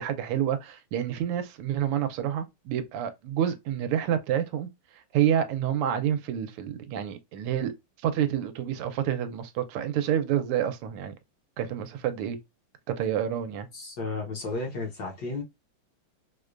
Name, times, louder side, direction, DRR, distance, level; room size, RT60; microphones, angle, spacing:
voice 1, 0.0-4.7 5.1-7.7 8.0-11.1 11.6-12.4 13.0-13.7, right 10 dB, 85° right, 1.6 m, -28 dB
voice 2, 13.7-15.4, left 3 dB, 60° left, 1.2 m, -33 dB
4.9 x 2.2 x 2.4 m
omnidirectional pair, 2.4 m